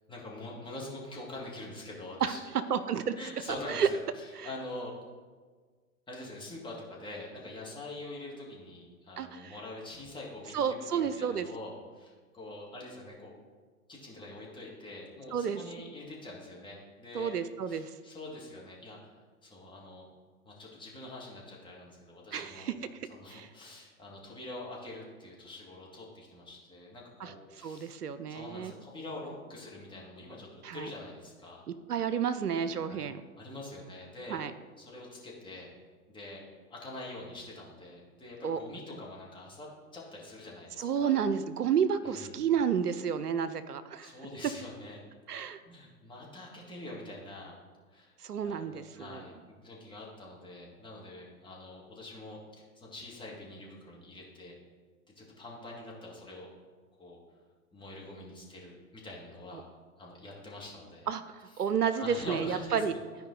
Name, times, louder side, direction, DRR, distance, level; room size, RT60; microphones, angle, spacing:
voice 1, 0.1-2.4 3.2-4.9 6.1-13.3 13.9-17.3 17.7-19.1 19.4-20.1 20.5-22.7 23.1-28.0 28.3-31.6 32.9-33.1 33.4-34.4 34.8-35.7 36.1-36.4 36.7-41.1 42.0-42.5 44.0-45.0 45.7-47.6 47.9-48.2 48.4-54.6 55.2-56.5 57.0-57.2 57.7-59.7 60.0-61.1 61.9-63.0, left 2 dB, 10° left, -4 dB, 2.0 m, -45 dB
voice 2, 2.2-3.2 3.7-3.9 4.4-4.5 9.2-9.6 10.5-11.5 15.3-15.6 17.1-18.0 22.3-22.7 23.3-23.5 27.2-27.3 27.6-28.7 30.6-30.9 31.7-33.2 34.3-34.5 38.4-38.6 40.8-44.1 45.3-45.6 48.2-49.2 59.5-59.6 61.1-62.9, right 7 dB, 85° right, 12 dB, 0.6 m, -31 dB
13.0 x 4.9 x 3.9 m, 1.5 s
figure-of-eight pair, 105°, 45 cm